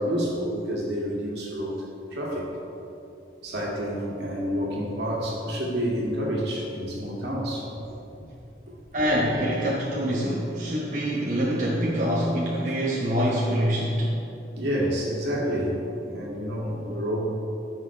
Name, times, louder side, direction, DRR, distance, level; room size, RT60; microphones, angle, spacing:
voice 1, 0.0-1.8 2.1-2.5 3.4-7.7 8.7-8.8 14.6-17.3, equal, 75° right, -4 dB, 2.1 m, -29 dB
voice 2, 8.9-14.1, equal, 45° right, -5 dB, 1.0 m, -25 dB
14.5 x 6.1 x 3.3 m, 2.8 s
head